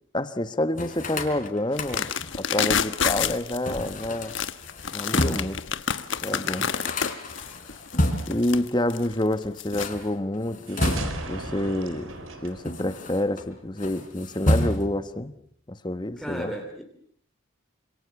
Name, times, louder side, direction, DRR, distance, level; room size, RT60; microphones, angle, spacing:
voice 1, 0.1-4.4 4.9-5.6 6.2-6.7 8.3-11.0 11.3-12.1 12.4-15.3 15.7-16.5, left 1 dB, 20° left, 1.3 m, -28 dB
sound 1, 0.7-2.4 3.6-5.6 6.0-6.1 6.3-8.5 9.6-11.4 12.2-13.4 13.8-15.1, left 1 dB, 40° left, 3.9 m, -30 dB
sound 2, 1.7-9.9, left 7 dB, 65° left, 1.3 m, -29 dB
voice 2, 6.2-6.7 16.2-16.8, equal, ahead, 2.9 m, -36 dB
sound 3, 10.7-13.5, right 2 dB, 85° right, 4.4 m, -36 dB
28.0 x 27.0 x 7.1 m
head